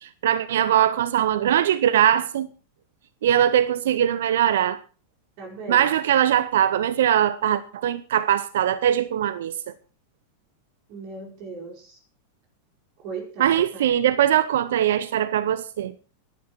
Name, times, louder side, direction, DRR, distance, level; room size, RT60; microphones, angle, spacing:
voice 1, 0.0-2.5 3.2-4.8 5.7-9.7 13.4-15.9, right 10 dB, 60° right, 0.8 m, -21 dB
voice 2, 5.4-5.9 10.9-12.0 13.0-13.9, right 4 dB, 45° right, 4.6 m, -37 dB
16.0 x 12.0 x 4.6 m
figure-of-eight pair, 90°, 0 cm